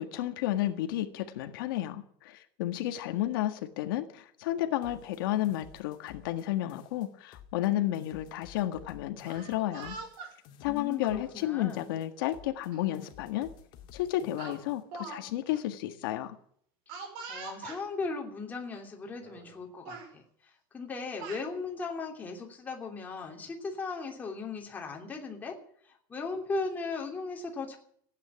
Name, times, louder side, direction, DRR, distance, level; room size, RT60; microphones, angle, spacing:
voice 1, 0.0-10.0 10.6-13.5 13.9-16.3, left 14 dB, 85° left, 7 dB, 1.7 m, -32 dB
sound 1, 4.8-6.4 6.7-7.7 7.9-11.4 11.7-12.7 12.9-14.8, left 8 dB, 45° left, 2.2 m, -54 dB
Speech, 9.1-10.3 11.2-11.5 12.7-12.8 13.2-13.4 14.4-15.2 15.5-15.6 16.9-17.8 18.7-18.8 19.2-19.5 19.8-20.1 20.9-21.4, right 4 dB, 55° right, 6.1 m, -43 dB
voice 2, 10.6-11.9 16.9-17.0 17.3-25.6 25.8-27.8, left 4 dB, 15° left, 1 dB, 3.0 m, -37 dB
16.0 x 9.5 x 9.6 m, 0.63 s
cardioid pair, 165°, 11 cm